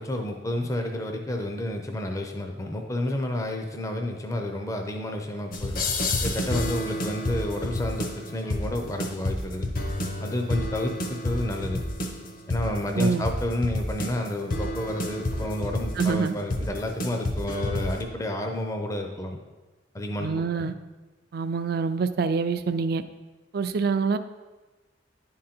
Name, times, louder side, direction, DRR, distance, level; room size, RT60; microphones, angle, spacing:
voice 1, 0.0-5.8 6.2-9.7 10.2-11.8 12.5-19.4 19.9-20.3 20.5-20.7, left 1 dB, 20° left, 3 dB, 0.5 m, -30 dB
sound 1, 5.5-18.0, left 1 dB, 50° left, 0.9 m, -30 dB
voice 2, 16.0-16.3 20.2-20.7 21.3-23.0 23.5-24.2, right 5 dB, 55° right, 11 dB, 0.4 m, -25 dB
10.5 x 3.8 x 4.3 m, 1.2 s
head